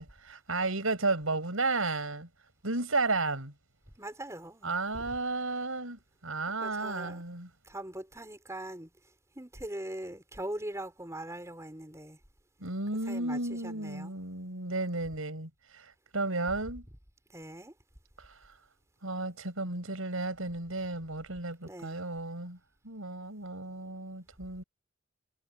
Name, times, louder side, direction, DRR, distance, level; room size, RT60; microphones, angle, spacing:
voice 1, 0.0-2.3 2.6-3.5 4.6-7.5 12.6-16.9 19.0-22.6 22.8-24.6, right 3 dB, 90° right, 5.2 m, -33 dB
voice 2, 4.0-5.0 6.6-7.2 7.6-8.9 9.3-12.2 13.0-14.1 17.3-17.7 21.6-22.0, right 1 dB, 15° right, 4.7 m, -41 dB
head